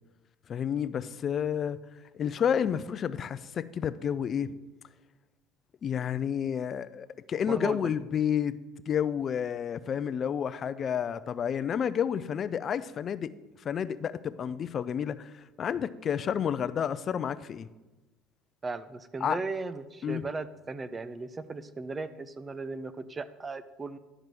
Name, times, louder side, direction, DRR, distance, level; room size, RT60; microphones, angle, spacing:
voice 1, 0.5-1.8 2.1-4.6 5.8-8.5 8.9-13.3 13.6-17.7 19.2-19.4 20.0-20.2, left 8 dB, 40° left, 15 dB, 0.5 m, -30 dB
voice 2, 7.5-7.9 18.6-24.0, right 3 dB, 25° right, 14 dB, 0.6 m, -37 dB
11.0 x 5.1 x 6.1 m, 1.2 s
supercardioid pair, 95°, 0 cm